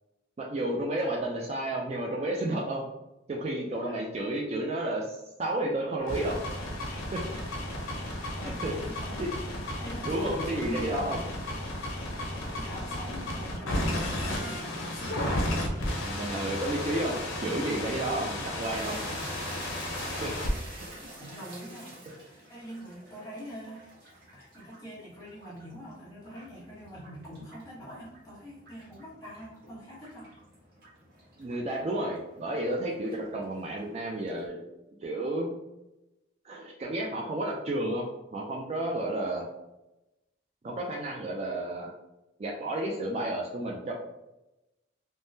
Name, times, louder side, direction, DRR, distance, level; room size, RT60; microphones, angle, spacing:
voice 1, 0.4-2.8 3.3-6.4 7.1-7.2 8.4-8.7 9.2-9.3 10.0-11.2 16.0-19.0 20.2-20.3 31.4-34.7 35.0-35.5 36.4-39.5 40.6-41.9 42.4-43.9, right 1 dB, 35° right, -1 dB, 0.3 m, -31 dB
sound 1, 6.0-20.5, left 1 dB, 85° left, 0.6 m, -33 dB
voice 2, 8.4-9.3 9.8-11.4 11.8-16.6 19.9-23.9 24.3-30.3, equal, 20° left, -8 dB, 1.1 m, -44 dB
sound 2, 16.2-34.5, right 1 dB, 55° right, 1.0 m, -49 dB
3.5 x 2.1 x 2.6 m, 0.95 s
head